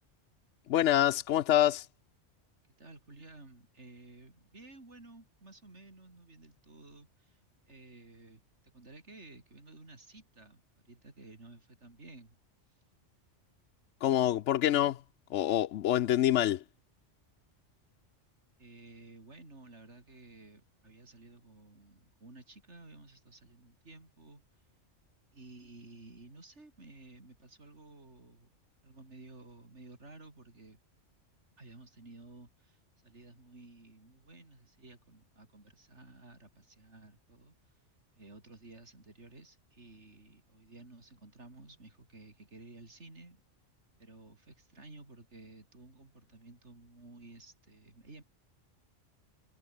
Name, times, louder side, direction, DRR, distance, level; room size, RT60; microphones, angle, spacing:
voice 1, 0.7-1.9 14.0-15.0 15.3-16.6, left 12 dB, 80° left, 0.9 m, -26 dB
voice 2, 2.8-12.4 12.7-12.8 18.6-24.6 25.3-28.5 28.8-30.8 31.6-37.8 38.2-43.4 44.0-48.2, right 2 dB, 70° right, 4.9 m, -54 dB
omnidirectional pair, 1.2 m